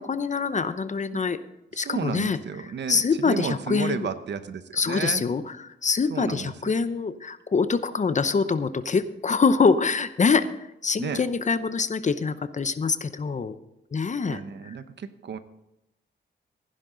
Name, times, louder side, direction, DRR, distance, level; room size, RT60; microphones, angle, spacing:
voice 1, 0.0-1.4 1.7-2.4 2.9-4.1 4.7-10.5 10.8-13.6 13.9-14.8, left 5 dB, 40° left, 12 dB, 0.7 m, -25 dB
voice 2, 1.7-5.2 6.1-6.7 11.0-11.2 14.3-15.4, right 6 dB, 70° right, 11 dB, 0.9 m, -32 dB
15.5 x 10.5 x 3.9 m, 0.87 s
cardioid pair, 90°, 19 cm